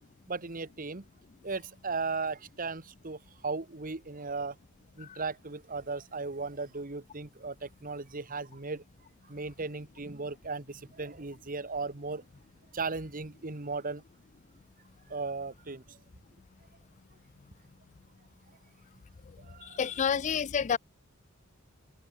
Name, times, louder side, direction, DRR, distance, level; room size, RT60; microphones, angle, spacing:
voice 1, 0.3-1.0 1.4-4.6 5.0-8.8 9.3-12.2 12.7-14.0 15.1-16.0 19.4-19.8, right 4 dB, 40° right, 1.3 m, -36 dB
voice 2, 19.8-20.8, left 7 dB, 35° left, 0.3 m, -28 dB
open air
head